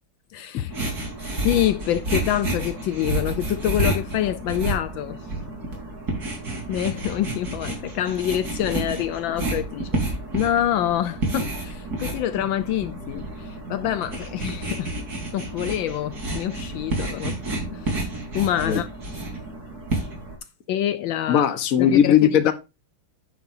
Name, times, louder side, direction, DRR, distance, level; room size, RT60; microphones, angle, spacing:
voice 1, 0.3-0.8 1.4-5.2 6.7-9.9 10.3-14.9 15.3-17.4 17.7-18.9 20.7-21.4 21.8-22.3, left 12 dB, 75° left, 1.3 m, -26 dB
sound 1, 0.7-20.4, right 2 dB, 45° right, 4.3 m, -30 dB
voice 2, 21.3-22.5, left 9 dB, 50° left, 1.3 m, -18 dB
10.0 x 9.7 x 2.7 m
omnidirectional pair, 2.2 m